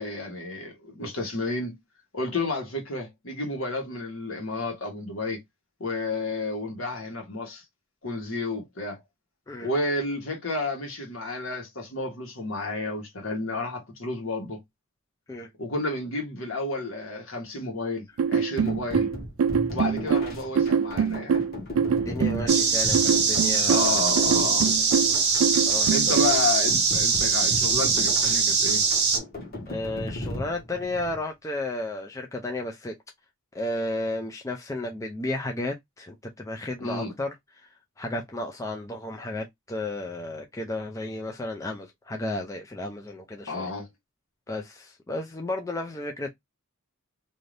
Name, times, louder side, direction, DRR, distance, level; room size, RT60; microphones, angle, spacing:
voice 1, 0.0-1.7 2.1-5.4 5.8-7.6 8.0-9.0 9.6-14.6 15.6-19.1 19.7-21.4 23.7-24.7 25.9-28.8 36.8-37.1 43.5-43.9, left 2 dB, 65° left, 1.2 m, -31 dB
sound 1, 18.2-26.4, right 6 dB, 70° right, 0.3 m, -24 dB
sound 2, 18.7-31.2, left 1 dB, 45° left, 1.2 m, -37 dB
voice 2, 21.9-24.0 25.7-26.2 29.7-33.0 33.5-37.7 38.0-43.7 44.5-46.3, left 2 dB, 15° left, 0.4 m, -33 dB
sound 3, 22.5-29.2, right 5 dB, 50° right, 0.9 m, -22 dB
2.6 x 2.5 x 3.2 m
head